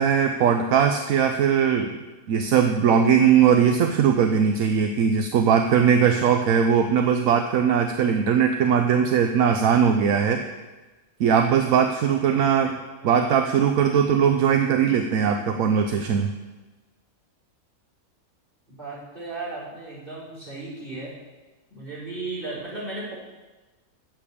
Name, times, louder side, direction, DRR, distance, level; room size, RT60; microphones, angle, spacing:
voice 1, 0.0-2.0 2.3-10.5 11.2-12.7 13.0-16.3, right 7 dB, 75° right, 6 dB, 1.0 m, -20 dB
voice 2, 13.0-13.4 18.8-21.1 21.7-23.1, right 3 dB, 35° right, -6 dB, 4.5 m, -35 dB
7.6 x 7.0 x 8.4 m, 1.2 s
omnidirectional pair, 1.5 m